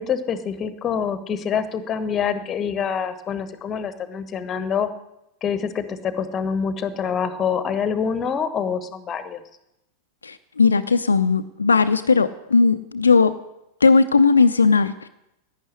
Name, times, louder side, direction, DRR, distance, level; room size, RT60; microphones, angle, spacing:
voice 1, 0.0-4.9 5.4-9.4, left 7 dB, 25° left, 13 dB, 1.3 m, -26 dB
voice 2, 10.2-13.3 13.8-15.1, left 4 dB, 75° left, 9 dB, 0.6 m, -17 dB
11.5 x 9.4 x 9.8 m, 0.87 s
figure-of-eight pair, 90°, 0 cm